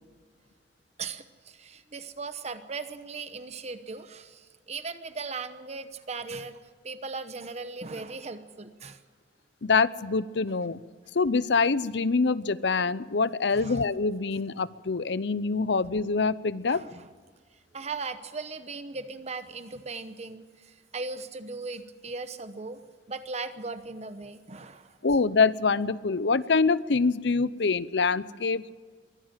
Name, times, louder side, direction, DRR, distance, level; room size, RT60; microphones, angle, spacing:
voice 1, 1.0-9.0 13.5-13.8 16.7-17.1 17.7-22.8 23.1-25.0, right 4 dB, 40° right, 11 dB, 0.9 m, -38 dB
voice 2, 9.6-10.8 11.1-16.8 25.0-28.7, left 4 dB, 70° left, 17 dB, 0.7 m, -25 dB
23.0 x 15.5 x 7.4 m, 1.6 s
head